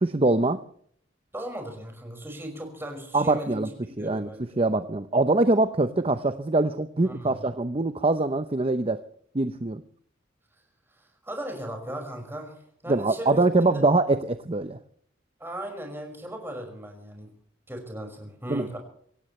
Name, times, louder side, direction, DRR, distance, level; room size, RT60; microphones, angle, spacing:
voice 1, 0.0-0.6 3.1-3.7 4.0-4.3 4.6-9.0 9.3-9.8 12.9-14.8 18.5-18.7, right 2 dB, 30° right, 10 dB, 0.7 m, -23 dB
voice 2, 1.3-4.6 7.0-7.4 11.0-13.8 15.4-17.3 17.7-18.8, right 1 dB, 10° right, 3 dB, 5.6 m, -38 dB
25.0 x 16.5 x 3.2 m, 0.62 s
head